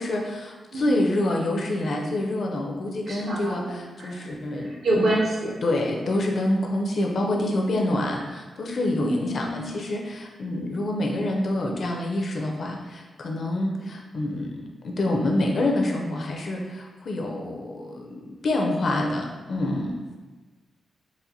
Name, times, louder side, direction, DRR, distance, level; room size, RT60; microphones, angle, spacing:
voice 1, 0.0-5.1 5.6-20.0, left 1 dB, 45° left, 1 dB, 0.4 m, -27 dB
voice 2, 0.7-1.0 3.1-5.6 9.0-9.7, right 1 dB, 60° right, -3 dB, 0.5 m, -28 dB
4.1 x 2.5 x 2.6 m, 1.2 s
wide cardioid pair, 170°, 0 cm